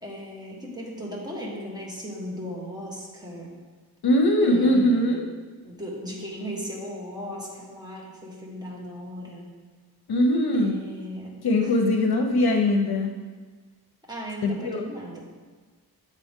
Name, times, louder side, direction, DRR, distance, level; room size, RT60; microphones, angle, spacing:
voice 1, 0.0-3.6 4.4-5.2 5.6-9.5 10.5-12.1 14.1-15.2, equal, 10° right, -4 dB, 1.5 m, -37 dB
voice 2, 4.0-5.2 10.1-10.8 11.4-13.1 14.4-14.8, left 1 dB, 70° left, 3 dB, 0.7 m, -21 dB
8.2 x 4.2 x 3.6 m, 1.4 s
wide cardioid pair, 75°, 39 cm